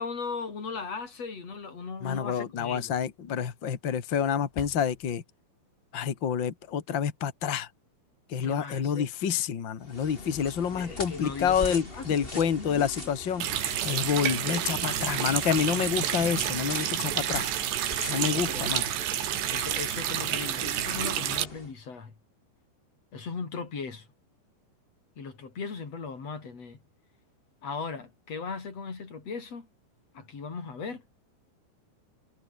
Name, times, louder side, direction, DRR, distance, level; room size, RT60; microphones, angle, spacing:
voice 1, 0.0-2.9 8.4-9.1 10.2-13.1 18.2-18.7 19.5-22.1 23.1-24.1 25.2-26.8 27.6-29.7 30.1-31.0, left 5 dB, 35° left, 4.9 m, -38 dB
voice 2, 2.0-5.2 5.9-7.7 8.3-13.5 13.8-17.4 18.1-18.8, left 8 dB, 70° left, 1.1 m, -28 dB
sound 1, 4.1-5.1, left 9 dB, 85° left, 5.5 m, -44 dB
sound 2, 9.8-21.7, left 1 dB, 10° left, 5.6 m, -42 dB
Water tap faucet, 13.4-21.4, right 11 dB, 70° right, 4.2 m, -29 dB
omnidirectional pair, 5.4 m